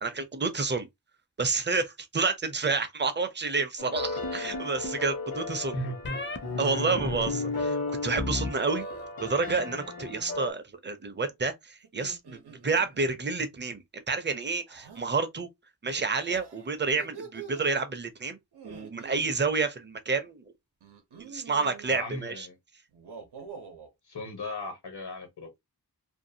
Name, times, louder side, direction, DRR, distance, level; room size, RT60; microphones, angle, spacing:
voice 1, 0.0-0.9 1.4-5.8 6.6-8.9 9.2-15.5 15.8-18.4 18.6-20.4 21.2-22.5, right 4 dB, 30° right, 0.5 m, -29 dB
sound 1, 3.8-10.5, left 3 dB, 60° left, 0.9 m, -35 dB
sound 2, 4.2-5.1 6.0-6.4 7.0-8.5 8.8-9.4, left 3 dB, 30° left, 0.5 m, -34 dB
sound 3, 5.6-5.9 6.3-6.8 8.5-9.8 11.8-13.2 14.7-15.1 16.3-17.8 18.5-19.3 20.8-21.9 22.9-23.9, right 6 dB, 90° right, 0.7 m, -47 dB
voice 2, 5.7-6.2 21.9-22.6 24.0-25.6, left 1 dB, 85° left, 1.2 m, -37 dB
2.6 x 2.3 x 2.7 m
wide cardioid pair, 85°, 39 cm